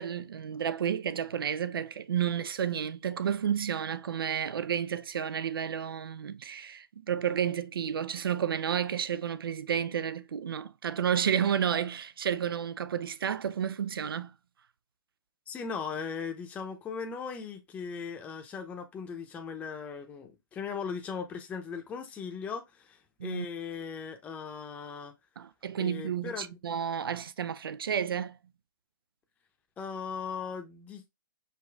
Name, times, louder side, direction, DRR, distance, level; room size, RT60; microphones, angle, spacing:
voice 1, 0.0-14.3 23.2-23.5 25.4-28.4, right 8 dB, 85° right, 0.4 m, -31 dB
voice 2, 15.5-25.1 25.8-26.6 29.8-31.1, left 6 dB, 10° left, 0.7 m, -38 dB
5.1 x 2.6 x 3.4 m
hypercardioid pair, 150°, 12 cm